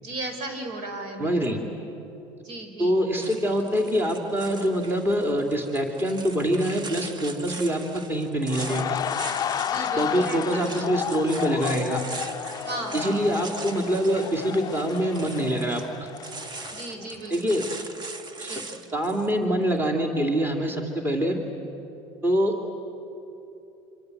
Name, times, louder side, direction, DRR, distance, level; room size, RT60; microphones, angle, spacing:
voice 1, 0.0-1.4 2.4-3.0 9.6-11.0 12.6-13.2 16.7-17.6 18.5-18.8, right 2 dB, 65° right, 5 dB, 4.6 m, -36 dB
voice 2, 1.2-1.6 2.8-7.8 8.1-9.0 10.0-12.0 12.9-16.1 17.3-17.6 18.4-18.6 18.9-21.4 22.2-22.5, equal, 15° right, 3 dB, 2.7 m, -25 dB
sound 1, 3.2-19.3, right 3 dB, 35° right, 1.7 m, -41 dB
sound 2, 8.5-17.3 17.6-17.8, left 9 dB, 30° left, 0.5 m, -32 dB
26.5 x 25.0 x 7.9 m, 2.9 s
supercardioid pair, 100°, 13 cm